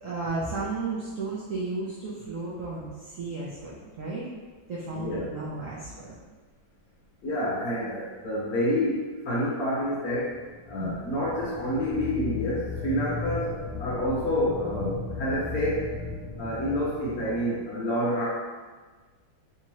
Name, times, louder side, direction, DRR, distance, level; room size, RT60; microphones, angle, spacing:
voice 1, 0.0-4.3 4.7-6.1 10.8-10.9, right 3 dB, 80° right, -7 dB, 0.7 m, -34 dB
voice 2, 4.9-5.3 7.2-10.4 10.7-15.9 16.4-18.3, equal, 65° left, -6 dB, 0.9 m, -28 dB
sound 1, 10.1-17.6, left 4 dB, 15° left, 1.2 m, -36 dB
3.5 x 2.9 x 2.9 m, 1.4 s
omnidirectional pair, 2.1 m